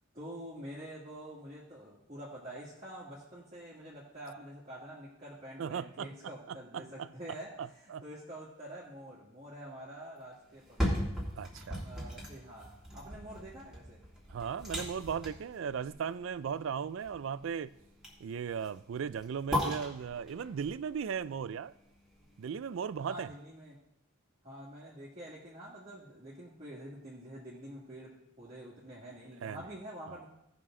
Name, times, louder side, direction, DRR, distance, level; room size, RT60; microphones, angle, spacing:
voice 1, 0.1-11.1 11.8-14.0 23.0-23.8 24.4-30.2, right 1 dB, 35° right, 1.9 m, -47 dB
voice 2, 5.6-6.1 6.5-7.1 7.6-8.0 11.4-11.8 14.3-17.7 18.2-21.7 22.4-23.3 29.4-29.6 30.1-30.2, right 7 dB, 75° right, 0.4 m, -37 dB
sound 1, 10.5-22.5 23.0-23.1, equal, 5° right, 2.2 m, -38 dB
16.5 x 6.1 x 3.8 m
head